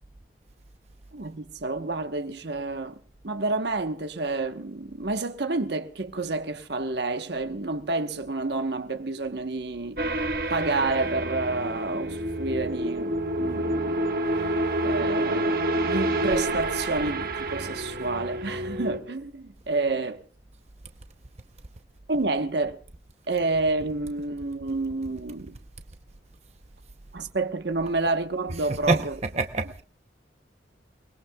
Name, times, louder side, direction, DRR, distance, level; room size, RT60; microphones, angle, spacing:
voice 1, 1.1-3.0 3.2-10.2 10.5-14.0 14.8-20.2 22.1-22.8 23.3-25.5 27.1-29.2, right 3 dB, 70° right, 1.1 m, -29 dB
sound 1, 10.0-19.0, right 1 dB, 55° right, 1.3 m, -28 dB
voice 2, 28.6-29.8, right 3 dB, 35° right, 0.8 m, -27 dB
28.5 x 20.5 x 2.3 m
head